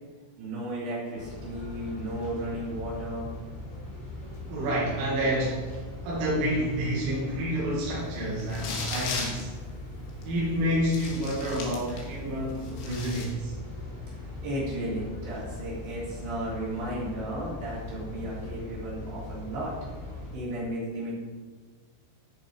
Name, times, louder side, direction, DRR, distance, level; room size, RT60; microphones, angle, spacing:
voice 1, 0.4-3.3 14.4-19.7 20.3-21.2, right 1 dB, 50° right, -7 dB, 5.2 m, -34 dB
sound 1, 1.1-20.3, left 2 dB, 50° left, 5.0 m, -40 dB
voice 2, 4.2-9.5 10.2-13.6, equal, 80° right, -6 dB, 4.8 m, -29 dB
sound 2, 8.4-9.4 10.2-10.3 10.9-12.1 12.5-13.2, left 4 dB, 75° left, 4.1 m, -36 dB
13.5 x 6.6 x 4.9 m, 1.4 s
omnidirectional pair, 5.7 m